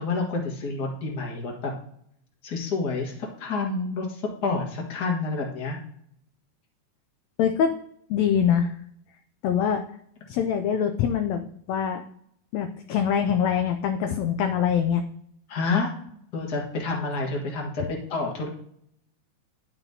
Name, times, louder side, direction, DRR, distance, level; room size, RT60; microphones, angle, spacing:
voice 1, 0.0-1.7 2.4-5.8 15.5-15.9 16.3-18.5, left 3 dB, 40° left, -1 dB, 1.7 m, -28 dB
voice 2, 7.4-7.7 8.1-8.7 9.4-9.8 10.3-12.0 12.5-15.0, left 8 dB, 80° left, 6 dB, 1.6 m, -24 dB
11.0 x 5.6 x 2.8 m, 0.67 s
omnidirectional pair, 3.5 m